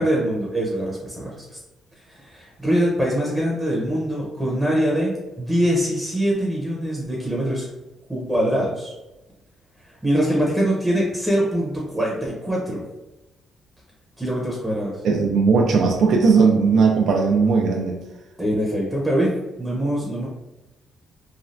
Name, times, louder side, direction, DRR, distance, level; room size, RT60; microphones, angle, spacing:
voice 1, 0.0-1.6 2.1-7.7 8.1-8.9 10.0-12.8 14.2-15.0 18.4-19.3 19.6-20.3, equal, 5° right, -3 dB, 0.7 m, -23 dB
voice 2, 15.0-18.0, right 5 dB, 70° right, 1 dB, 0.4 m, -17 dB
3.2 x 2.3 x 2.5 m, 1.0 s
cardioid pair, 90°, 0 cm